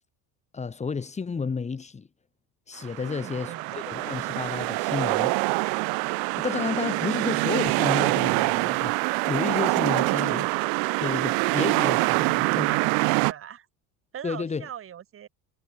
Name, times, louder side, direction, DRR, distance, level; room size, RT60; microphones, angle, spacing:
voice 1, 0.5-2.1 2.7-5.3 6.4-9.0 9.3-10.4 11.0-12.7 14.2-14.7, left 5 dB, 20° left, 4.1 m, -31 dB
sound 1, 2.9-13.3, right 36 dB, 70° right, 0.6 m, -25 dB
voice 2, 3.0-3.7 9.9-10.4 11.9-13.7 14.1-15.3, right 10 dB, 35° right, 5.6 m, -40 dB
cardioid pair, 145°, 37 cm